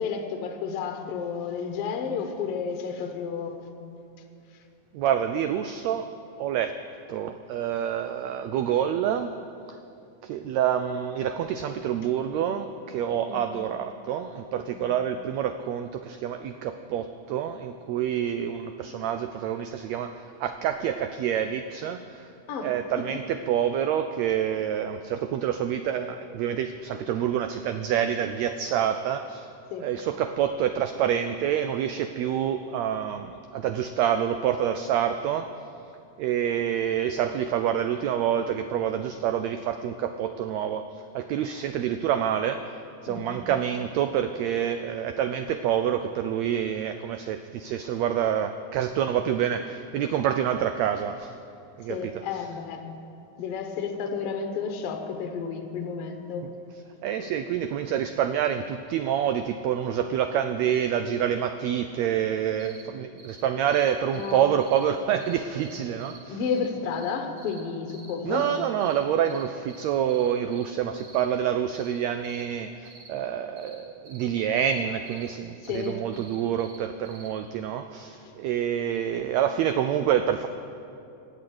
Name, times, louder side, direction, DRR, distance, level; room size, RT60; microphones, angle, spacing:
voice 1, 0.0-3.7 13.3-13.4 22.5-22.7 23.0-23.1 29.7-29.9 43.1-43.3 51.9-52.9 53.4-56.5 57.2-57.3 64.1-64.4 66.3-68.5 75.6-76.0, left 6 dB, 60° left, 5 dB, 1.8 m, -31 dB
voice 2, 4.9-6.1 6.4-6.8 7.1-9.3 9.7-9.8 10.2-22.3 22.6-29.5 29.8-35.5 36.2-42.8 43.0-51.4 51.8-52.4 57.0-66.4 68.2-80.5, right 9 dB, 85° right, 9 dB, 1.5 m, -27 dB
sound 1, 62.6-62.8 63.2-63.4 63.7-64.8 65.2-67.1 67.4-67.6 67.9-68.5 68.8-69.0 69.3-69.4 69.7-70.7 71.0-71.2 71.7-71.9 72.2-72.4 72.9-73.1 73.6-73.8 74.1-74.3 74.6-74.8 75.1-75.3 75.6-76.8 77.1-77.3, right 3 dB, 60° right, 3.2 m, -49 dB
19.0 x 6.5 x 7.7 m, 2.6 s
omnidirectional pair, 3.6 m